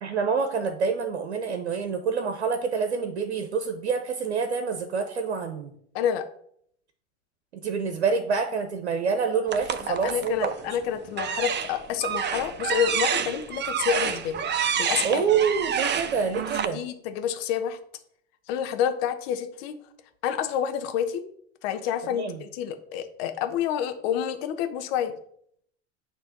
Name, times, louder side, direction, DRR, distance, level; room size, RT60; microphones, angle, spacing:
voice 1, 0.0-5.7 7.5-10.8 15.0-16.8 22.1-22.4, right 5 dB, 85° right, 6 dB, 0.9 m, -27 dB
sound 1, 9.5-10.6 11.1-16.6, right 8 dB, 35° right, 0.8 m, -28 dB
voice 2, 9.8-14.4 14.8-15.2 16.7-17.8 18.5-19.8 20.2-21.3 21.6-25.1, left 9 dB, 65° left, 8 dB, 1.1 m, -28 dB
8.7 x 3.3 x 5.9 m, 0.67 s
hypercardioid pair, 75°, 33 cm